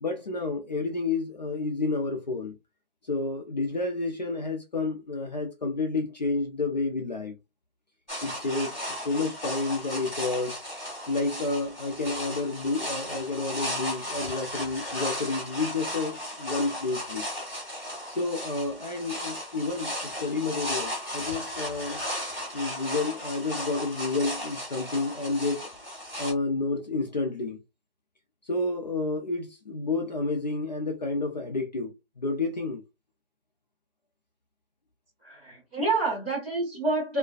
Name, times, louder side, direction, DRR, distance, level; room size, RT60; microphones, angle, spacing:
voice 1, 0.0-2.6 3.1-7.4 8.2-10.6 11.1-17.2 18.1-22.0 22.5-25.7 26.2-27.6 28.4-32.8, left 3 dB, 45° left, 0.5 m, -30 dB
sound 1, 8.1-26.3, equal, 5° left, 1.2 m, -35 dB
voice 2, 35.2-37.2, right 3 dB, 10° right, 1.3 m, -28 dB
2.4 x 2.2 x 2.3 m
figure-of-eight pair, 165°, 29 cm